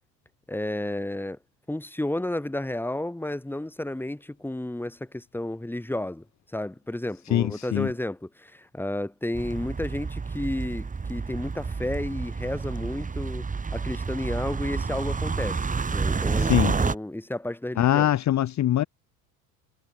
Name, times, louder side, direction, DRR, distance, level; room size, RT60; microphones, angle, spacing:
voice 1, 0.5-1.4 1.7-6.2 6.5-18.1, left 1 dB, 5° left, 3.2 m, -32 dB
voice 2, 7.3-7.9 16.4-16.8 17.8-18.8, left 12 dB, 40° left, 1.2 m, -23 dB
sound 1, 9.3-17.0, right 4 dB, 20° right, 2.1 m, -29 dB
supercardioid pair, 95°, 41 cm